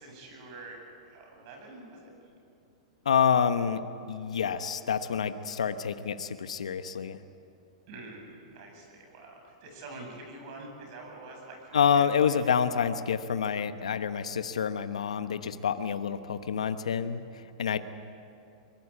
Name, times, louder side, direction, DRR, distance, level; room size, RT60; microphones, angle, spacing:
voice 1, 0.0-2.1 7.9-12.8, right 2 dB, 55° right, 2 dB, 8.0 m, -46 dB
voice 2, 3.0-3.8 4.1-7.2 11.7-17.8, left 7 dB, 85° left, 10 dB, 1.1 m, -28 dB
23.5 x 21.0 x 8.5 m, 2.6 s
hypercardioid pair, 120°, 3 cm